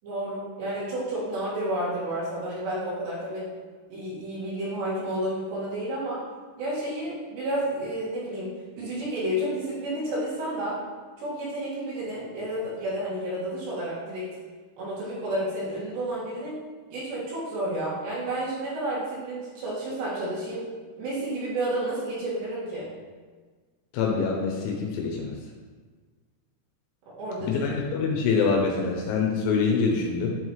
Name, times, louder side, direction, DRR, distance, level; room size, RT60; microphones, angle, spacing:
voice 1, 0.0-3.5 3.9-6.2 6.6-10.8 11.2-14.3 14.8-16.6 16.9-20.6 21.0-22.9 27.2-27.6, right 1 dB, 65° right, -8 dB, 3.6 m, -31 dB
voice 2, 23.9-25.3 27.4-30.4, left 5 dB, 80° left, 0 dB, 3.0 m, -25 dB
11.0 x 3.9 x 3.1 m, 1.4 s
omnidirectional pair, 5.9 m